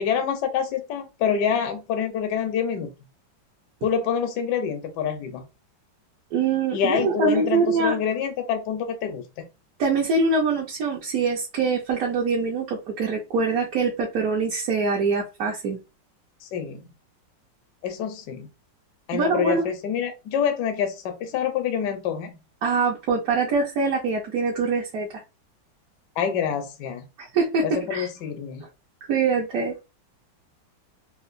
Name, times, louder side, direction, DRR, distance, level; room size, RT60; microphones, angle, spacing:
voice 1, 0.0-2.9 3.8-5.4 6.7-9.2 16.4-16.8 17.8-18.5 19.1-22.3 26.2-27.0 27.6-28.7, left 7 dB, 70° left, 4 dB, 1.2 m, -26 dB
voice 2, 6.3-8.0 9.8-15.8 19.1-19.7 22.6-25.2 27.2-28.1 29.1-29.8, right 4 dB, 60° right, -2 dB, 1.1 m, -24 dB
3.7 x 2.4 x 2.5 m, 0.27 s
omnidirectional pair, 2.1 m